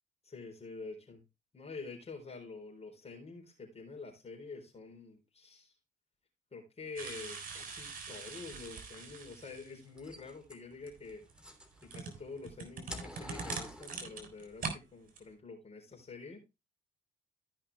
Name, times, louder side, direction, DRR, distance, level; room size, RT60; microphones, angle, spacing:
voice 1, 0.2-1.2 1.5-5.7 6.5-11.3 11.8-16.4, left 4 dB, 35° left, 0 dB, 4.0 m, -47 dB
sound 1, 7.0-9.8 10.8-14.8 15.1-15.2, right 5 dB, 50° right, 3.9 m, -43 dB
sound 2, 9.9-12.2 12.6-14.3, equal, 5° right, 3.2 m, -47 dB
14.5 x 5.7 x 3.4 m, 0.24 s
hypercardioid pair, 55°, 18 cm